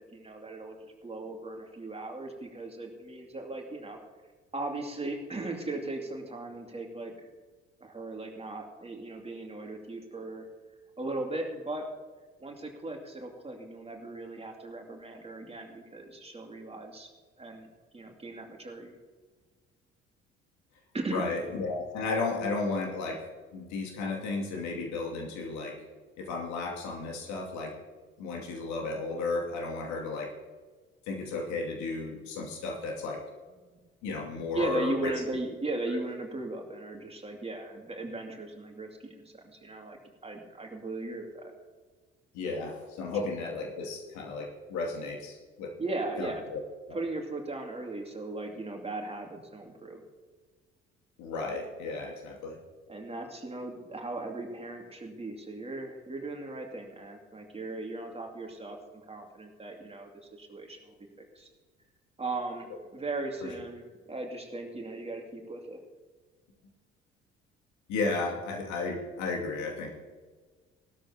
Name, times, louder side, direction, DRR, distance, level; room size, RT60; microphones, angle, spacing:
voice 1, 0.1-4.0 4.5-7.1 7.8-10.5 11.0-11.9 12.4-17.1 17.4-18.9 20.9-21.2 33.7-33.8 34.5-41.5 45.8-46.4 46.9-50.0 52.9-58.8 59.1-61.5 62.2-65.8, right 2 dB, 20° right, 2 dB, 2.4 m, -37 dB
voice 2, 21.1-25.8 26.2-27.7 28.2-30.3 31.1-33.2 34.0-35.1 42.3-45.7 46.2-46.6 46.9-47.0 51.2-52.6 63.4-63.5 67.9-69.9, left 3 dB, 60° left, 1 dB, 2.5 m, -34 dB
18.0 x 13.0 x 2.9 m, 1.4 s
figure-of-eight pair, 50°, 32 cm